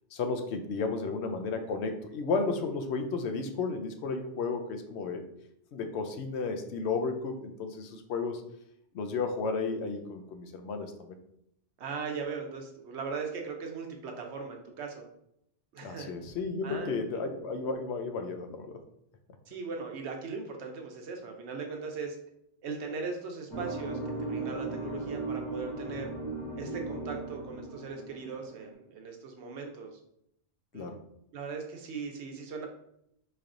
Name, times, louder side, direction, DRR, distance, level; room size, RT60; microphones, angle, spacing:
voice 1, 0.1-5.3 5.7-8.4 8.9-11.2 15.8-18.8 30.7-31.0, left 4 dB, 80° left, 6 dB, 0.8 m, -33 dB
voice 2, 11.8-15.1 15.7-16.1 16.6-17.3 19.5-22.2 22.6-26.1 26.6-30.0 30.7-30.8 31.3-32.7, right 5 dB, 80° right, 3 dB, 1.0 m, -39 dB
sound 1, 23.5-28.7, right 3 dB, 25° left, 0.9 m, -37 dB
4.2 x 3.1 x 2.5 m, 0.76 s
omnidirectional pair, 1.1 m